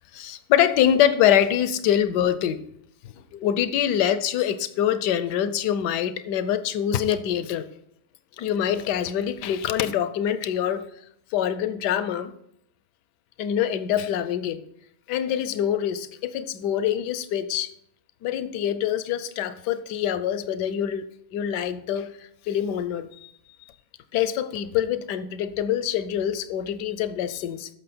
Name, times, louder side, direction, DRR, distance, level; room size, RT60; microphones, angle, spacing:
voice 1, 0.1-2.6 3.0-7.7 8.4-10.9 11.3-12.3 13.4-14.6 15.1-17.7 18.2-23.3 24.1-27.7, left 10 dB, 85° left, 13 dB, 1.2 m, -25 dB
13.5 x 5.6 x 4.3 m, 0.72 s
omnidirectional pair, 1.8 m